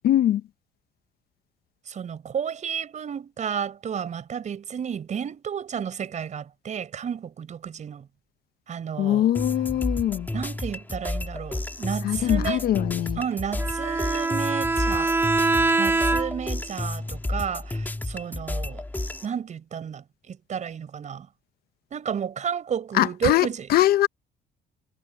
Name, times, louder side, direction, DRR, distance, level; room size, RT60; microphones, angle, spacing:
voice 1, 0.0-0.4 9.0-10.3 12.0-13.2 22.9-24.1, left 13 dB, 65° left, 0.8 m, -22 dB
voice 2, 1.9-8.1 8.7-9.3 10.3-12.7 13.2-15.1 15.8-18.8 19.2-21.3 21.9-23.7, right 8 dB, 45° right, 7.2 m, -32 dB
sound 1, 9.3-19.3, left 2 dB, 10° left, 2.2 m, -31 dB
Bowed string instrument, 13.6-16.6, right 3 dB, 15° right, 0.6 m, -24 dB
cardioid pair, 110°, 17 cm